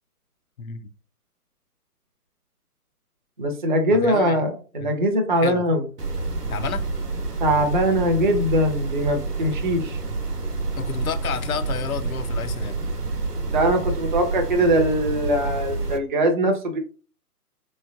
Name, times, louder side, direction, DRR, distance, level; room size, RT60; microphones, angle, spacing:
voice 1, 3.4-5.8 7.4-10.0 13.5-16.8, right 1 dB, 35° right, 0.5 m, -21 dB
voice 2, 3.9-4.4 4.8-4.9 5.4-5.6 6.5-6.8 10.8-12.8, left 7 dB, 65° left, 0.5 m, -30 dB
sound 1, 6.0-16.0, right 3 dB, 85° right, 0.9 m, -28 dB
3.4 x 3.1 x 2.4 m
figure-of-eight pair, 135°, 46 cm